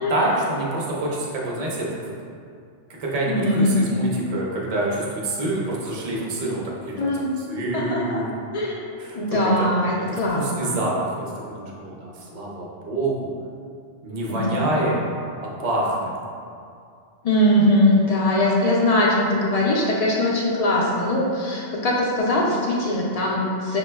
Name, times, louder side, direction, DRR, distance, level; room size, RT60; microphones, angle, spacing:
voice 1, 0.1-1.9 2.9-7.1 7.4-8.3 9.0-9.7 10.1-13.3 14.0-15.0 15.4-16.1, right 1 dB, 45° right, -4 dB, 0.6 m, -26 dB
voice 2, 3.3-3.8 7.0-7.4 7.7-8.2 8.5-8.8 9.2-10.8 14.3-15.0 17.2-23.8, left 1 dB, 70° left, -4 dB, 0.3 m, -21 dB
6.0 x 2.2 x 2.2 m, 2.3 s
omnidirectional pair, 1.2 m